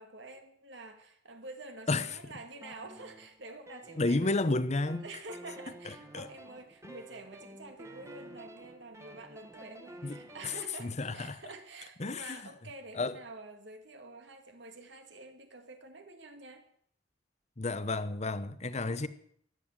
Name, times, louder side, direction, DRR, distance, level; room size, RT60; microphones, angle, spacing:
voice 1, 0.0-4.6 5.0-16.7 18.7-19.1, right 2 dB, 80° right, 2.3 m, -48 dB
sound 1, 2.6-4.5 4.9-10.7, right 1 dB, 15° right, 1.6 m, -50 dB
voice 2, 4.0-5.0 5.8-6.3 6.8-6.9 10.0-11.4 12.0-12.4 12.9-13.2 17.6-19.1, left 2 dB, 40° left, 0.9 m, -32 dB
16.0 x 11.0 x 7.6 m
head